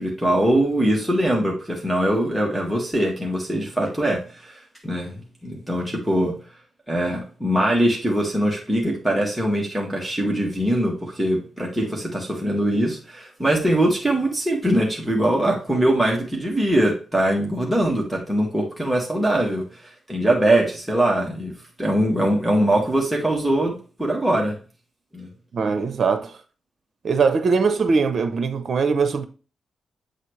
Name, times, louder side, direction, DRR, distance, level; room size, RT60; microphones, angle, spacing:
voice 1, 0.0-4.5 4.8-5.1 5.4-6.3 6.9-21.5 21.8-23.7 24.0-24.5 25.1-25.3, right 1 dB, 5° right, 2.0 m, -22 dB
voice 2, 25.5-26.3 27.0-29.2, right 5 dB, 60° right, 0.8 m, -21 dB
7.7 x 4.1 x 3.3 m
cardioid pair, 70°, 0 cm